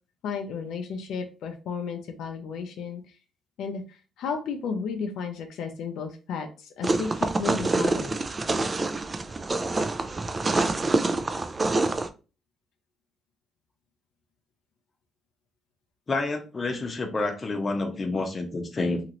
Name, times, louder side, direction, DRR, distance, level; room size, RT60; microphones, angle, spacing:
voice 1, 0.2-3.2 3.6-8.2, left 5 dB, 80° left, 4 dB, 0.5 m, -33 dB
sound 1, 6.8-12.1, right 2 dB, 30° right, 0.3 m, -26 dB
voice 2, 16.1-19.0, left 3 dB, 30° left, 4 dB, 0.7 m, -28 dB
2.9 x 2.5 x 2.9 m, 0.34 s
cardioid pair, 90°, 0 cm